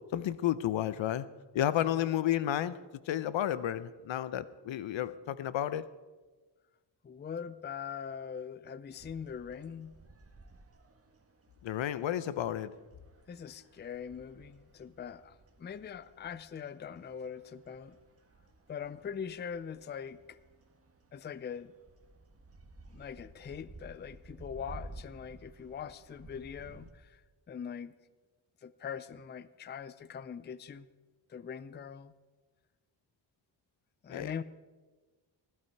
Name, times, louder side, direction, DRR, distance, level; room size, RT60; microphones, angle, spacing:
voice 1, 0.1-1.3 1.5-2.8 3.1-5.8 11.6-12.7 34.1-34.4, left 11 dB, 75° left, 16 dB, 0.7 m, -31 dB
voice 2, 7.0-9.9 13.3-18.0 18.7-20.4 21.1-21.7 22.9-27.2 27.5-27.9 28.6-30.9 31.3-32.1 34.0-34.4, left 7 dB, 25° left, 16 dB, 0.4 m, -42 dB
sound 1, 8.9-26.9, right 2 dB, 30° right, 1.3 m, -55 dB
16.5 x 12.0 x 4.6 m, 1.3 s
cardioid pair, 105°, 46 cm